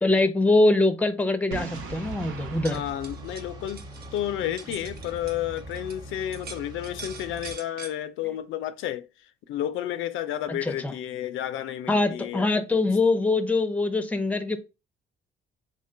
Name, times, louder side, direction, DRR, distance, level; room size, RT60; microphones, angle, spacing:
voice 1, 0.0-2.8 10.5-10.9 11.9-14.6, left 2 dB, 5° left, 0.5 m, -23 dB
Boom, 1.5-4.4, right 3 dB, 90° right, 0.7 m, -39 dB
sound 1, 1.7-7.6, right 2 dB, 20° right, 1.0 m, -42 dB
sound 2, 2.4-6.0 6.3-7.9, right 5 dB, 50° right, 0.7 m, -44 dB
voice 2, 2.7-3.8 4.1-9.1 9.5-12.5, left 12 dB, 80° left, 0.4 m, -31 dB
3.6 x 2.2 x 3.7 m
cardioid pair, 90°, 20 cm